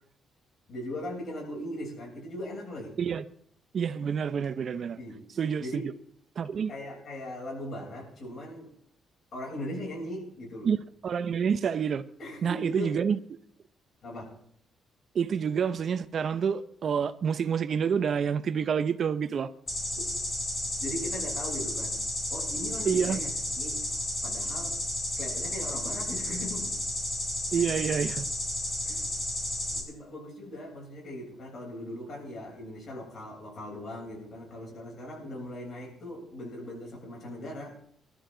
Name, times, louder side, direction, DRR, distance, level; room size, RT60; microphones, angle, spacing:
voice 1, 0.7-3.0 5.0-5.2 5.6-5.8 6.7-8.7 9.3-10.7 12.2-13.0 14.0-14.3 20.8-22.0 22.3-24.8 25.2-26.7 27.5-27.6 28.8-29.1 29.7-37.7, left 1 dB, 55° left, 7.7 m, -39 dB
voice 2, 3.7-5.0 5.4-5.9 6.4-6.7 10.6-10.8 11.0-12.0 12.4-13.2 15.1-19.5 22.9-23.2 27.5-28.3, right 7 dB, 55° right, 0.7 m, -28 dB
sound 1, 19.7-29.8, left 1 dB, 25° left, 5.2 m, -32 dB
21.0 x 12.5 x 3.9 m
cardioid pair, 90°, 0 cm